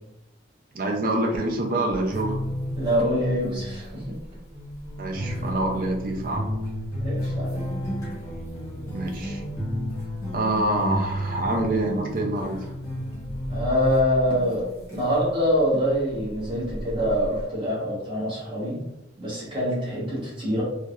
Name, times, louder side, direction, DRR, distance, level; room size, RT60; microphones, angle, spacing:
voice 1, 0.7-2.4 5.0-6.4 8.9-9.4 10.3-12.7, right 1 dB, 45° right, 1 dB, 0.5 m, -26 dB
sound 1, 1.9-15.4 16.0-17.4, equal, 15° left, 0.7 m, -32 dB
voice 2, 2.8-4.1 7.0-7.7 13.5-18.8 19.2-20.6, equal, 25° right, -6 dB, 0.9 m, -25 dB
3.3 x 2.0 x 2.3 m, 0.88 s
head